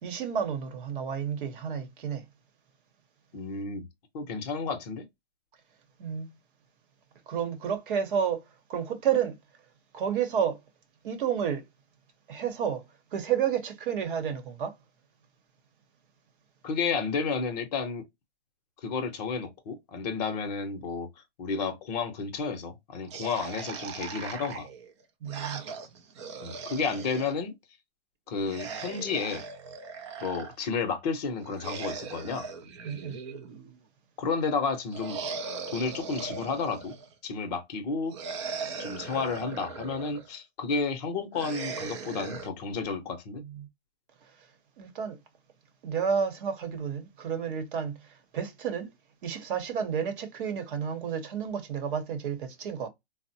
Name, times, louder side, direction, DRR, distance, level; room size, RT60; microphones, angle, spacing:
voice 1, 0.0-2.2 6.0-6.3 7.3-8.4 8.7-9.4 9.9-10.6 11.0-11.7 12.3-12.8 13.1-14.7 25.2-25.6 32.8-33.2 43.4-43.7 44.8-45.2 45.8-48.9 49.2-52.9, right 7 dB, 50° right, 0.9 m, -30 dB
voice 2, 3.3-3.8 4.1-5.1 16.6-18.0 18.8-21.1 21.4-24.7 26.4-27.6 28.3-29.4 30.2-32.5 34.2-35.2 35.7-37.0 37.2-38.3 38.8-43.4, left 5 dB, 40° left, 0.7 m, -31 dB
sound 1, 23.1-27.3 28.3-30.5 31.4-33.8 34.9-37.1 38.1-40.3 41.3-42.5, right 5 dB, 30° right, 0.3 m, -39 dB
3.6 x 2.0 x 2.6 m
hypercardioid pair, 145°, 32 cm